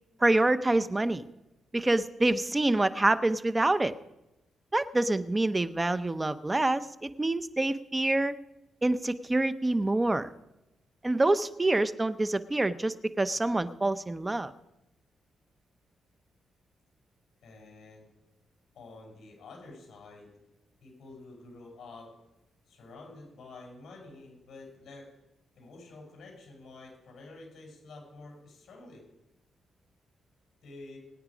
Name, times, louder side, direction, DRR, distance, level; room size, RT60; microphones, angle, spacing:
voice 1, 0.2-1.2 1.7-3.9 4.7-8.3 8.8-10.3 11.0-14.5, right 2 dB, 15° right, 13 dB, 0.6 m, -26 dB
voice 2, 17.4-18.1 18.7-20.3 20.8-22.1 22.7-25.1 25.5-29.0 30.6-31.0, left 3 dB, 55° left, 0 dB, 6.9 m, -49 dB
22.0 x 9.4 x 5.1 m, 0.94 s
cardioid pair, 125°, 0 cm